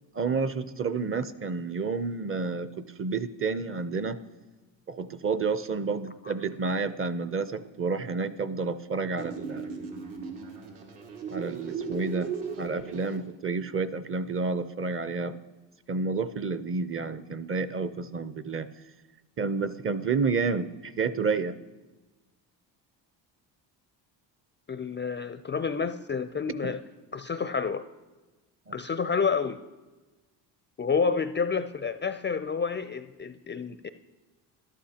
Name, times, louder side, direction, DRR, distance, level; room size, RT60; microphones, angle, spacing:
voice 1, 0.1-4.2 4.9-9.7 11.3-12.3 12.6-15.4 15.9-18.7 19.4-21.6 26.6-26.8 28.7-28.8, right 4 dB, 25° right, 14 dB, 0.6 m, -30 dB
sound 1, 9.2-13.2, right 5 dB, 80° right, 2.1 m, -37 dB
voice 2, 24.7-26.8 27.1-27.8 28.7-29.6 30.8-33.9, left 5 dB, 25° left, 10 dB, 0.4 m, -29 dB
12.5 x 11.5 x 2.9 m, 1.2 s
supercardioid pair, 65°, 50 cm